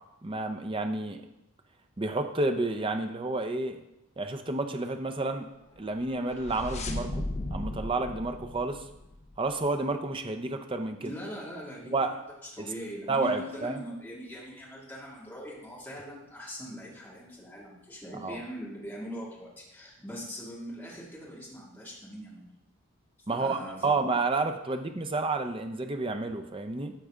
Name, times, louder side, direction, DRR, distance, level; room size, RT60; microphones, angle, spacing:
voice 1, 0.2-1.2 2.0-3.8 4.2-5.5 5.8-7.2 7.5-8.9 9.4-11.1 11.9-12.1 12.6-12.7 13.1-13.8 18.1-18.4 23.3-26.9, right 3 dB, 25° right, 6 dB, 0.5 m, -30 dB
sound 1, 5.9-9.5, left 1 dB, 30° left, 0.6 m, -36 dB
voice 2, 11.0-12.2 12.5-22.5 23.4-24.1, equal, 10° left, -7 dB, 2.3 m, -41 dB
13.5 x 4.7 x 3.7 m, 0.88 s
head